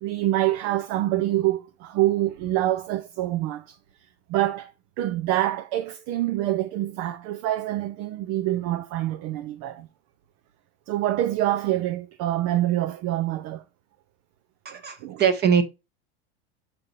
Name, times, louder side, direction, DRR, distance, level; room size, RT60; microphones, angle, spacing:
voice 1, 0.0-3.8 4.3-4.7 5.0-9.9 10.9-13.6 14.7-15.2, right 14 dB, 55° right, 0.8 m, -26 dB
voice 2, 14.6-15.6, right 7 dB, 30° right, 1.1 m, -22 dB
6.8 x 5.7 x 2.6 m
supercardioid pair, 110°, 32 cm